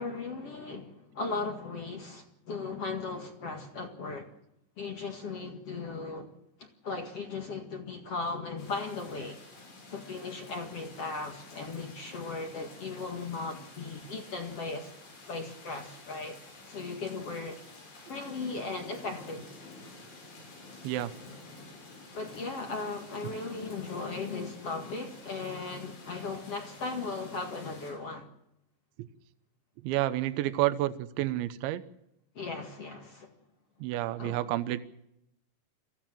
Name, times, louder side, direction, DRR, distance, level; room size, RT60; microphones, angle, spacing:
voice 1, 0.0-4.3 4.8-6.3 6.6-9.4 9.9-14.9 15.3-16.4 16.7-17.6 18.1-19.5 22.1-28.3 32.4-33.3 34.2-34.4, left 3 dB, 50° left, 2.0 m, -37 dB
sound 1, 8.6-27.9, left 2 dB, 85° left, 9.7 m, -50 dB
voice 2, 29.8-31.8 33.8-34.8, right 15 dB, 80° right, 3.3 m, -29 dB
25.0 x 16.0 x 7.6 m
omnidirectional pair, 5.4 m